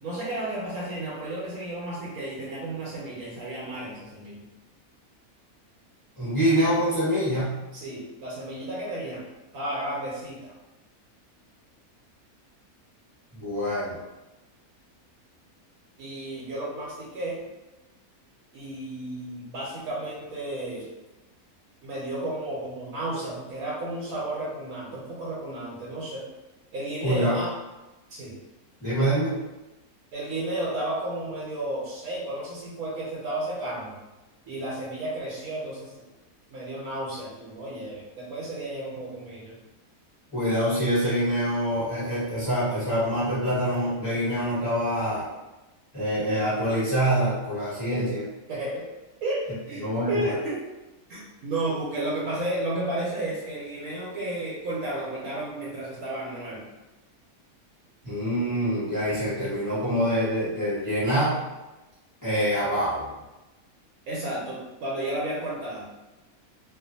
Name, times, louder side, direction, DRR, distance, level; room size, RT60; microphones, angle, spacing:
voice 1, 0.0-4.4 7.7-9.2 9.5-10.5 16.0-17.4 18.5-20.9 21.8-26.2 26.7-27.5 28.1-28.3 30.1-33.9 34.5-36.0 36.5-39.6 47.9-48.2 48.5-48.9 49.2-49.4 49.7-50.6 51.1-56.6 64.1-65.8, right 1 dB, 75° right, -5 dB, 1.1 m, -32 dB
voice 2, 6.2-7.6 13.3-14.0 27.0-27.4 28.8-29.3 40.3-45.3 45.9-48.2 49.8-50.3 58.0-61.3 62.2-63.0, equal, 15° left, -11 dB, 1.2 m, -25 dB
2.5 x 2.4 x 2.6 m, 1.0 s
omnidirectional pair, 1.6 m